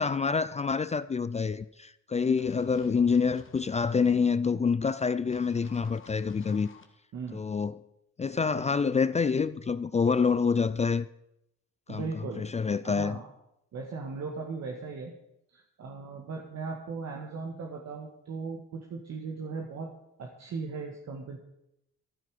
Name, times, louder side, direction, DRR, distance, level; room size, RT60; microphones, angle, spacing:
voice 1, 0.0-6.7 7.3-7.8 8.2-11.1 11.9-12.0 12.4-13.2, left 5 dB, 25° left, 0.4 m, -27 dB
sound 1, 2.4-4.1 5.3-6.8, left 6 dB, 40° left, 1.9 m, -52 dB
voice 2, 11.9-12.5 12.8-13.3 13.7-15.1 15.5-19.9 20.2-21.4, right 4 dB, 60° right, 1.9 m, -38 dB
14.0 x 11.5 x 5.0 m
cardioid pair, 90°, 30 cm